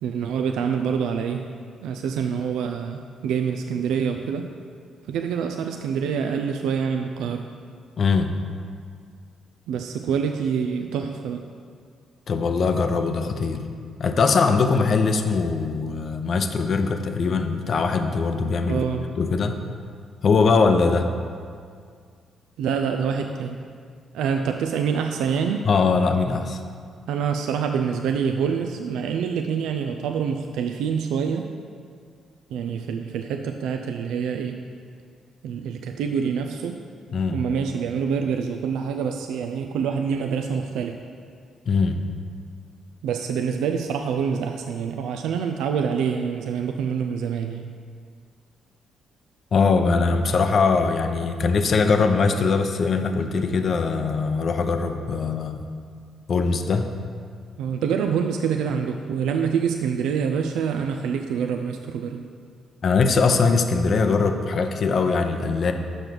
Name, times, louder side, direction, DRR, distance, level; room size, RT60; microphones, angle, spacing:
voice 1, 0.0-1.5 1.8-4.5 5.1-7.5 9.7-11.4 18.7-19.1 22.6-23.6 24.1-25.7 27.1-31.5 32.5-34.6 35.4-36.8 37.3-41.0 43.0-47.6 57.6-62.3, right 7 dB, 80° right, 5 dB, 0.3 m, -26 dB
voice 2, 8.0-8.3 12.3-13.6 14.0-18.8 19.2-19.6 20.2-21.1 25.6-26.6 37.1-37.4 41.7-42.0 49.5-55.6 56.3-56.9 62.8-65.7, left 4 dB, 55° left, 7 dB, 0.6 m, -21 dB
6.1 x 5.2 x 5.9 m, 2.1 s
supercardioid pair, 60°, 0 cm